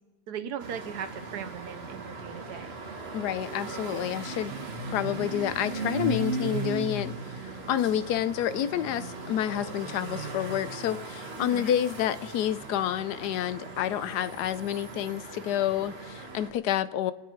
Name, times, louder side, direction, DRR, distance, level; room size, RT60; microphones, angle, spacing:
voice 1, 0.3-2.8 11.4-11.6, right 8 dB, 80° right, 12 dB, 1.4 m, -38 dB
sound 1, 0.6-16.5, right 3 dB, 40° right, 1.6 m, -37 dB
voice 2, 3.1-4.5 4.9-17.1, left 11 dB, 85° left, 15 dB, 1.2 m, -29 dB
26.0 x 9.6 x 4.5 m, 1.3 s
omnidirectional pair, 1.7 m